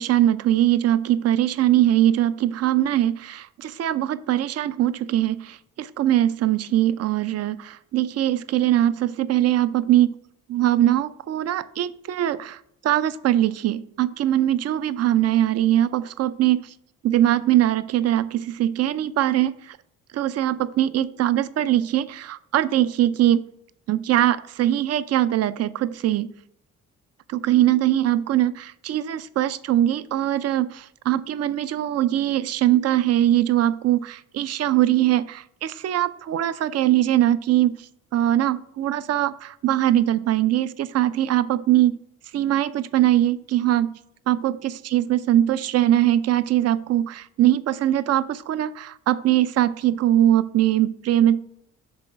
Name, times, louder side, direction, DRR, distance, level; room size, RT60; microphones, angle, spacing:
voice 1, 0.0-10.2 10.5-16.7 17.0-19.8 20.1-23.5 23.9-26.3 27.3-37.8 38.1-42.0 42.3-44.0 44.3-51.4, right 12 dB, 55° right, 16 dB, 0.5 m, -21 dB
6.2 x 3.8 x 6.2 m, 0.72 s
cardioid pair, 90°, 30 cm